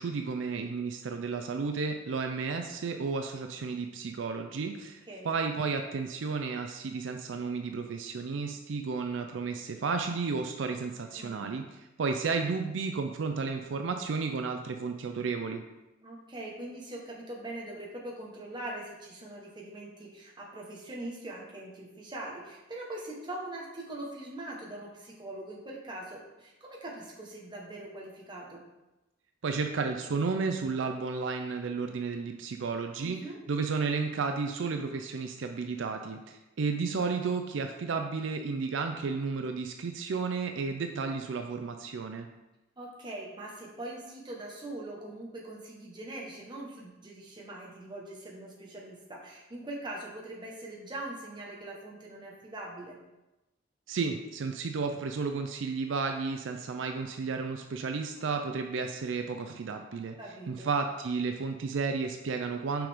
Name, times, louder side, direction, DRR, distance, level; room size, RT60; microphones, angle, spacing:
voice 1, 0.0-15.6 29.4-33.2 33.5-42.3 53.9-60.2 60.5-62.9, right 4 dB, 75° right, 5 dB, 0.4 m, -32 dB
voice 2, 11.1-11.5 16.0-28.6 33.0-33.4 42.8-53.0 60.2-60.7, right 1 dB, 25° right, -3 dB, 1.2 m, -42 dB
5.9 x 5.0 x 3.6 m, 1.0 s
head